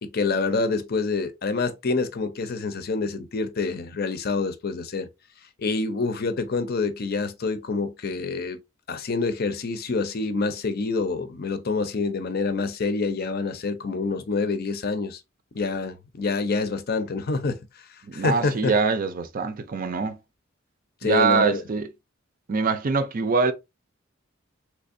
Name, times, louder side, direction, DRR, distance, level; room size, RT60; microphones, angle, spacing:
voice 1, 0.0-5.1 5.6-8.6 8.9-15.2 15.5-17.6 18.1-18.7 21.0-21.6, left 4 dB, 50° left, 0.6 m, -27 dB
voice 2, 18.0-20.2 21.0-21.9 22.5-23.5, right 4 dB, 45° right, 0.5 m, -23 dB
3.3 x 3.2 x 2.5 m
head